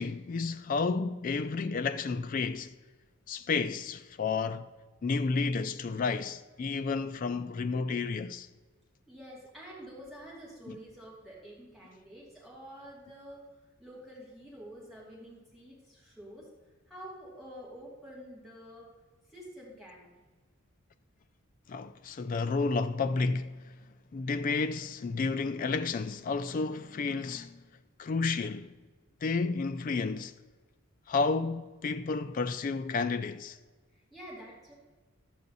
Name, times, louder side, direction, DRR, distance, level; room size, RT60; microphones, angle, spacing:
voice 1, 0.0-2.7 3.3-4.7 5.0-8.5 10.7-10.8 21.7-23.7 24.1-27.6 28.0-28.7 29.2-30.3 31.1-33.6, left 4 dB, 40° left, 0.3 m, -31 dB
voice 2, 9.1-13.5 13.8-16.5 16.9-18.9 19.2-20.2 33.9-34.7, equal, ahead, 2.6 m, -48 dB
11.5 x 8.3 x 4.0 m
head